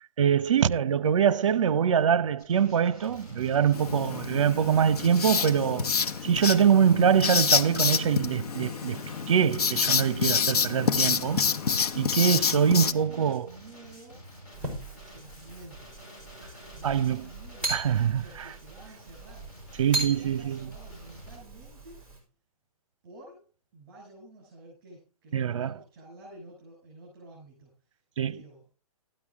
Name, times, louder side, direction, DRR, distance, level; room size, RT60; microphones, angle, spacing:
voice 1, 0.2-5.9 6.2-11.4 12.0-13.5 16.8-17.2 17.7-18.5 19.8-20.6 25.3-25.7 28.2-28.4, right 8 dB, 55° right, 0.8 m, -24 dB
Male speech man speaking, 2.4-21.4, equal, 30° left, 6.5 m, -50 dB
Writing, 3.7-12.9, left 6 dB, 85° left, 1.1 m, -27 dB
voice 2, 12.6-14.2 14.5-15.9 16.7-17.8 18.2-19.5 19.9-22.0 23.0-23.5 23.7-28.0 28.3-28.6, right 2 dB, 25° right, 6.6 m, -50 dB
sound 1, 14.5-22.2, right 2 dB, 5° left, 4.4 m, -39 dB
13.0 x 10.0 x 3.5 m
hypercardioid pair, 180°, 19 cm